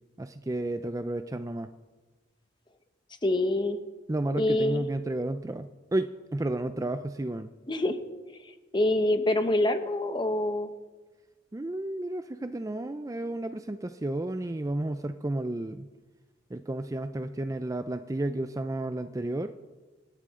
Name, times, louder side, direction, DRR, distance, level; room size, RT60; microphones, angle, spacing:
voice 1, 0.2-1.7 4.1-7.5 11.5-15.9 16.5-19.5, right 1 dB, 15° right, 9 dB, 0.4 m, -32 dB
voice 2, 3.2-3.8 4.4-4.8 7.7-8.0 8.7-10.7, left 1 dB, 25° left, 8 dB, 1.1 m, -25 dB
25.5 x 12.0 x 3.7 m, 1.3 s
head